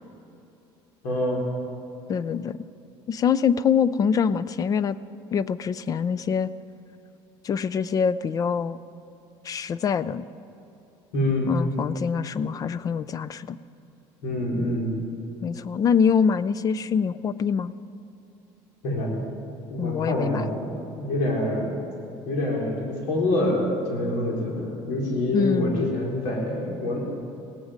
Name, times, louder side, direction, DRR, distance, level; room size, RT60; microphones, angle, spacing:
voice 1, 1.0-1.4 11.1-11.5 14.2-14.9 18.8-19.1 19.7-21.8 22.2-27.0, left 1 dB, 85° left, -1 dB, 4.1 m, -26 dB
voice 2, 2.1-2.6 3.1-5.0 5.3-6.5 7.4-8.8 9.4-10.3 11.5-13.6 15.4-17.7 19.8-20.5 25.3-25.9, left 7 dB, 35° left, 17 dB, 0.4 m, -24 dB
17.0 x 15.5 x 5.1 m, 2.9 s
cardioid pair, 125°, 11 cm